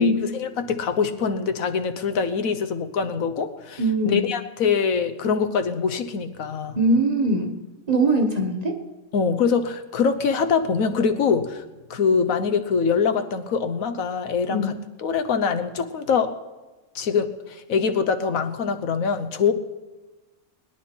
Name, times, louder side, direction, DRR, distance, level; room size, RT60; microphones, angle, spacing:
voice 1, 0.0-6.8 9.1-11.6 11.9-14.6 15.0-16.4 16.9-19.5, left 6 dB, 90° left, 8 dB, 1.4 m, -24 dB
voice 2, 3.8-4.2 6.8-7.5 7.9-8.8 14.5-14.7, right 1 dB, 30° right, 3 dB, 1.4 m, -21 dB
22.0 x 10.0 x 4.5 m, 1.2 s
omnidirectional pair, 1.4 m